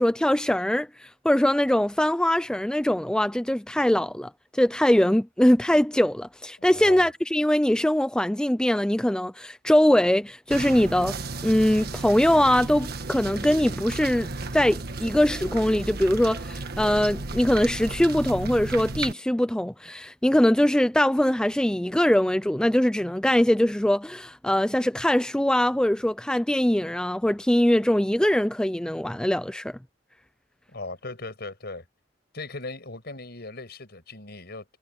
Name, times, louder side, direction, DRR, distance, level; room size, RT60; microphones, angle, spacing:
voice 1, 0.0-11.2 11.4-29.8, left 1 dB, 5° left, 0.4 m, -22 dB
voice 2, 6.6-7.1 30.7-31.9 32.3-34.7, left 2 dB, 60° left, 6.2 m, -38 dB
sound 1, 10.5-19.1, right 3 dB, 55° right, 1.5 m, -34 dB
head